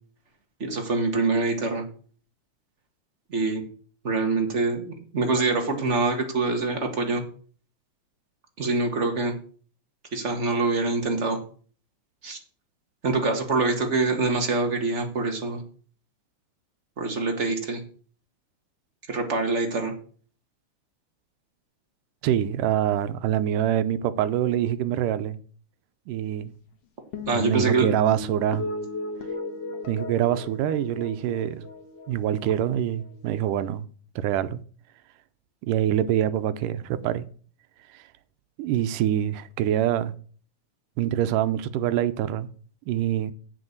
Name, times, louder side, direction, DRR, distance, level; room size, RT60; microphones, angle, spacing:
voice 1, 0.6-1.8 3.3-3.6 4.0-7.2 8.6-9.3 10.1-11.4 12.2-12.4 13.0-15.6 17.0-17.8 19.1-19.9 27.3-27.9, right 3 dB, 35° right, 1.2 m, -25 dB
voice 2, 22.2-25.4 26.1-26.5 27.3-28.7 29.9-31.6 32.1-33.9 34.2-34.6 35.6-37.3 37.9-38.0 38.6-40.1 41.0-42.5 42.9-43.3, right 11 dB, 90° right, 2.3 m, -25 dB
sound 1, 27.1-33.7, left 3 dB, 55° left, 2.4 m, -37 dB
8.3 x 7.7 x 6.6 m
omnidirectional pair, 3.6 m